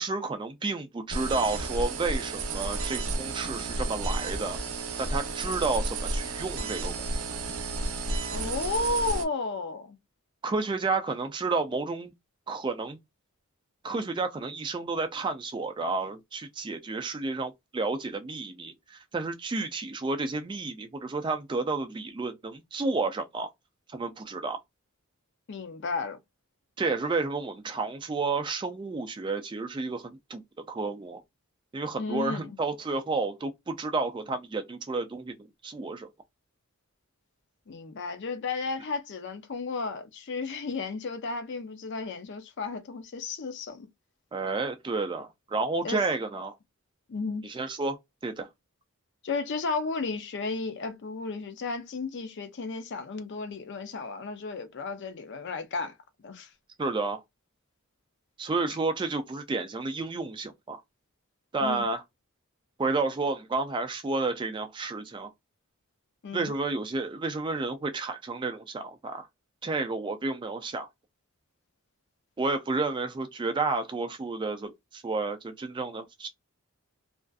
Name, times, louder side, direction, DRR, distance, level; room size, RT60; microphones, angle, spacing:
voice 1, 0.0-4.6 5.0-6.9 10.4-12.1 12.5-13.0 13.8-23.5 23.9-24.6 26.8-30.4 30.7-31.2 31.7-36.1 44.3-46.5 47.4-48.0 48.2-48.5 56.8-57.2 58.4-60.8 61.5-62.0 62.8-65.3 66.3-69.3 69.6-70.9 72.4-76.3, right 3 dB, 20° right, 0.3 m, -31 dB
sound 1, 1.1-9.2, right 3 dB, 70° right, 0.6 m, -32 dB
voice 2, 8.3-10.0 25.5-26.2 32.0-32.6 37.7-43.9 45.8-46.0 47.1-47.5 49.2-56.0 56.2-56.5 61.6-61.8 66.2-66.5, left 3 dB, 50° left, 0.5 m, -33 dB
2.5 x 2.3 x 2.3 m
head